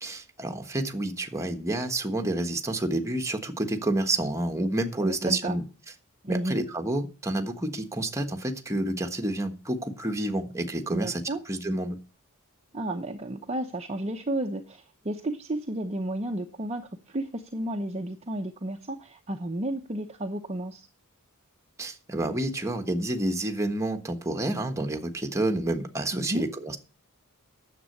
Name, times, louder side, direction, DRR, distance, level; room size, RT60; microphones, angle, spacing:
voice 1, 0.0-5.6 6.3-11.2 11.5-12.0 21.8-26.8, right 1 dB, 15° right, 4 dB, 1.3 m, -29 dB
voice 2, 5.0-5.6 6.2-6.6 10.9-11.4 12.7-20.9 26.1-26.5, right 1 dB, 30° right, 3 dB, 0.8 m, -32 dB
9.9 x 7.6 x 6.7 m, 0.35 s
head